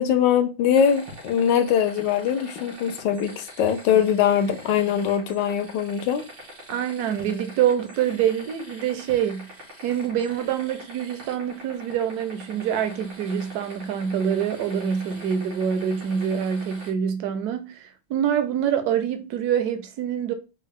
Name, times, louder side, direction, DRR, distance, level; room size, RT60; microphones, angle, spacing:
voice 1, 0.0-6.2, left 8 dB, 75° left, 1.2 m, -22 dB
sound 1, 0.7-16.9, equal, 90° right, 2.5 m, -44 dB
voice 2, 6.7-9.5 9.8-20.3, right 8 dB, 70° right, 1.0 m, -25 dB
5.1 x 2.1 x 3.7 m
omnidirectional pair, 2.1 m